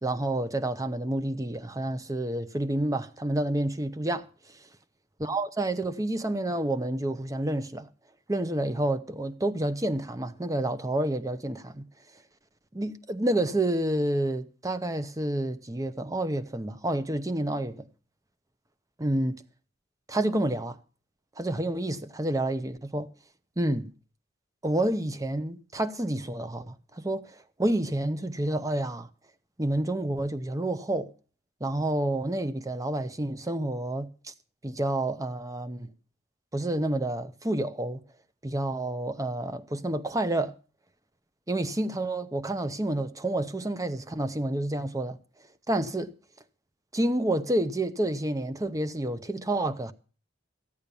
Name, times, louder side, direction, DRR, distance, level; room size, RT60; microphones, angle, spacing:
voice 1, 0.0-4.3 5.2-7.9 8.3-11.9 12.7-17.9 19.0-19.4 20.1-20.8 21.4-23.1 23.6-23.9 24.6-29.1 29.6-31.1 31.6-34.3 34.6-35.9 36.5-38.0 38.4-40.5 41.5-45.2 45.7-46.1 46.9-49.9, right 1 dB, 20° right, 0.8 m, -29 dB
15.0 x 8.8 x 6.9 m
head